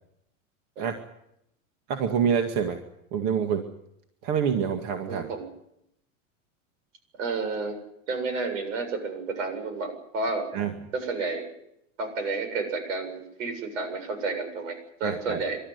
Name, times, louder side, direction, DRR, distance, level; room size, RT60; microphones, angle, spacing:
voice 1, 1.9-2.8 3.1-3.7 4.2-5.3 10.5-10.7 15.0-15.4, right 7 dB, 50° right, 5 dB, 2.1 m, -26 dB
voice 2, 5.1-5.5 7.2-7.8 8.1-10.5 10.9-11.5 12.0-15.6, right 3 dB, 80° right, 8 dB, 7.6 m, -31 dB
28.5 x 13.0 x 9.7 m, 0.80 s
supercardioid pair, 140°, 38 cm